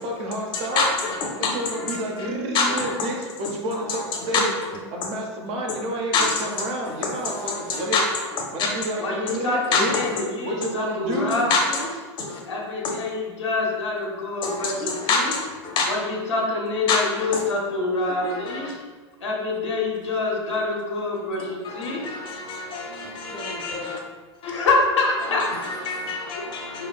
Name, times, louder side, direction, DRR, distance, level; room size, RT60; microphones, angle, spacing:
voice 1, 0.0-0.9 1.4-4.5 4.9-8.0 8.5-9.9 10.4-11.5, right 1 dB, 40° right, 0 dB, 0.7 m, -30 dB
voice 2, 0.5-2.3 2.5-3.2 3.9-4.0 4.3-4.4 5.0-5.1 5.7-5.9 6.1-8.7 9.7-10.2 11.1-11.9 12.2-12.4 14.4-15.9 16.9-17.4 18.1-18.7 21.6-24.0 24.4-24.5 25.2-26.9, left 4 dB, 30° left, 1 dB, 0.7 m, -27 dB
voice 3, 9.0-11.9 12.5-15.3 15.9-18.8 19.2-22.0 24.4-25.5 26.8-26.9, left 3 dB, 75° left, -2 dB, 0.9 m, -26 dB
4.4 x 2.3 x 2.2 m, 1.4 s
figure-of-eight pair, 90°, 15 cm